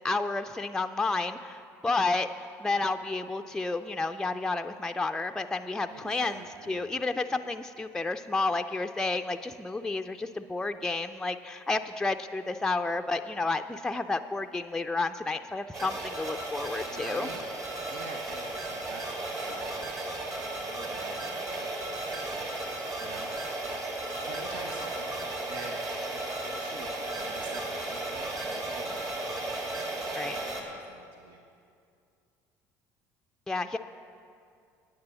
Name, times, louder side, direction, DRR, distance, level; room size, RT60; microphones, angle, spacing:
voice 1, 0.0-17.3 30.1-30.4 33.5-33.8, left 3 dB, 10° left, 7 dB, 0.4 m, -31 dB
voice 2, 5.9-6.9 16.8-17.5 17.9-23.7 24.2-25.8 26.1-29.4 29.7-31.4, right 3 dB, 75° right, 1 dB, 1.0 m, -47 dB
sound 1, 15.7-30.6, right 2 dB, 45° right, 2.4 m, -35 dB
9.5 x 8.8 x 6.9 m, 2.4 s
supercardioid pair, 80°, 8 cm